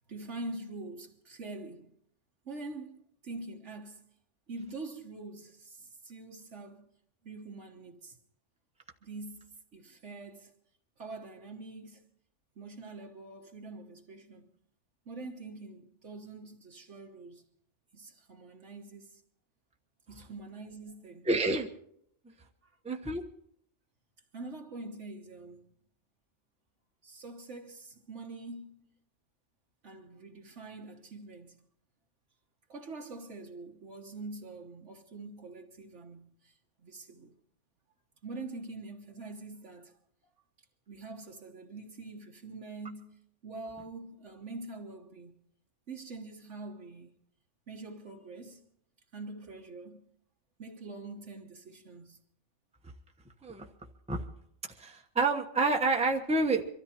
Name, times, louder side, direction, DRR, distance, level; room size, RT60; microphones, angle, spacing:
voice 1, 0.1-2.0 2.4-4.0 4.5-6.9 7.2-8.2 9.0-10.5 11.0-12.1 12.5-14.5 15.0-17.5 17.9-19.2 20.1-21.3 22.6-22.8 24.3-25.7 27.0-28.9 29.8-31.7 32.7-37.3 38.2-40.0 40.9-45.4 45.9-47.1 47.7-48.6 49.1-50.1 50.6-52.2, right 3 dB, 65° right, 1.6 m, -45 dB
voice 2, 21.2-21.7 22.8-23.2 53.4-53.7 54.1-54.2 54.8-56.6, right 3 dB, 5° right, 1.0 m, -28 dB
24.0 x 13.5 x 4.4 m
omnidirectional pair, 1.3 m